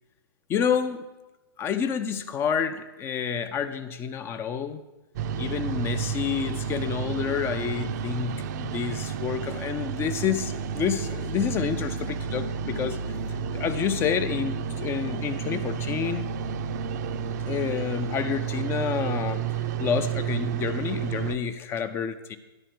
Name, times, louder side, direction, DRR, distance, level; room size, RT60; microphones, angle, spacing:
voice 1, 0.5-1.1 1.6-4.8 5.4-13.0 13.5-16.3 17.5-22.4, left 7 dB, 20° left, 11 dB, 0.5 m, -29 dB
sound 1, 5.1-21.4, right 7 dB, 45° right, 0.6 m, -31 dB
11.5 x 4.2 x 7.6 m, 1.1 s
hypercardioid pair, 125°, 13 cm